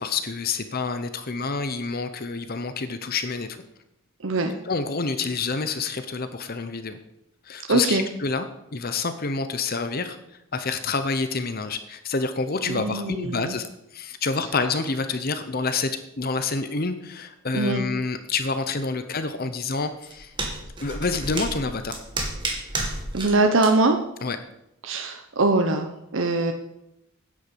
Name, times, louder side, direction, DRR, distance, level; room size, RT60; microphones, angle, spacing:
voice 1, 0.0-3.6 4.7-7.0 7.4-8.5 8.7-10.2 10.5-13.7 13.9-15.9 16.2-20.3 20.8-22.0 24.2-24.4, left 4 dB, 45° left, 9 dB, 0.8 m, -28 dB
voice 2, 4.2-4.5 7.7-8.1 12.7-13.6 17.5-17.8 23.1-24.0 24.8-26.5, right 2 dB, 60° right, 5 dB, 0.9 m, -22 dB
sound 1, 19.8-23.3 23.6-23.7, right 2 dB, 20° right, 2.1 m, -31 dB
10.0 x 8.6 x 6.8 m, 0.85 s
head